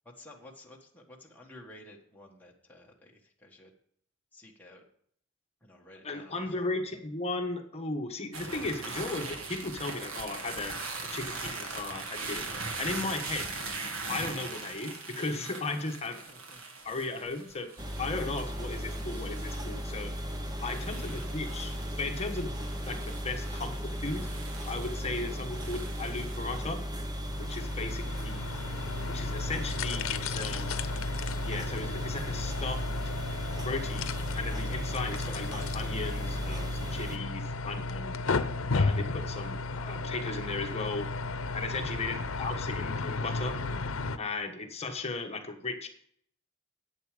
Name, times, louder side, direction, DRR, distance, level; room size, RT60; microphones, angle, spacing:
voice 1, 0.2-3.7 4.3-4.8 5.6-6.7 16.3-16.6 20.6-20.9 24.9-25.1 27.6-28.1 41.8-42.0, left 1 dB, 10° left, -2 dB, 1.5 m, -54 dB
voice 2, 6.0-10.7 11.1-12.4 12.8-13.5 14.1-16.2 16.8-17.7 18.0-20.1 20.6-24.3 24.7-26.8 27.4-28.5 29.1-30.7 31.4-32.8 33.6-38.2 38.7-41.1 41.5-43.6 44.2-45.9, left 3 dB, 30° left, 4 dB, 1.3 m, -36 dB
sound 1, 8.3-26.6, right 3 dB, 80° right, 1.6 m, -41 dB
sound 2, 17.8-37.2, equal, 20° right, 1.0 m, -36 dB
sound 3, 27.3-44.2, left 3 dB, 85° left, 0.7 m, -34 dB
11.0 x 8.8 x 5.0 m, 0.66 s
head